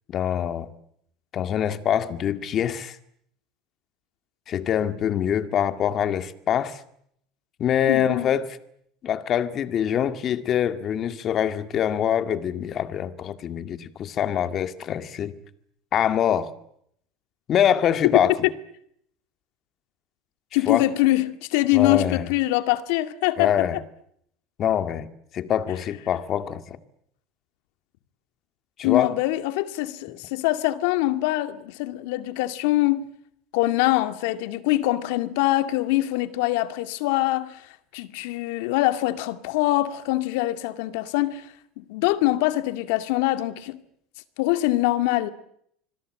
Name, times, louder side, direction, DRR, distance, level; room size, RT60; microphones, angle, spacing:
voice 1, 0.1-0.7 1.3-3.0 4.5-6.8 7.6-8.5 9.0-15.4 15.9-16.5 17.5-18.5 20.7-20.9 21.7-22.3 23.4-23.8 24.6-25.1 25.3-26.8 28.8-29.2, left 9 dB, 40° left, 2.1 m, -24 dB
voice 2, 7.9-8.3 20.5-23.7 28.8-33.1 33.5-37.6 37.9-41.5 41.8-43.8 44.4-45.3, left 16 dB, 80° left, 2.2 m, -23 dB
26.5 x 21.0 x 8.9 m
supercardioid pair, 125°, 0 cm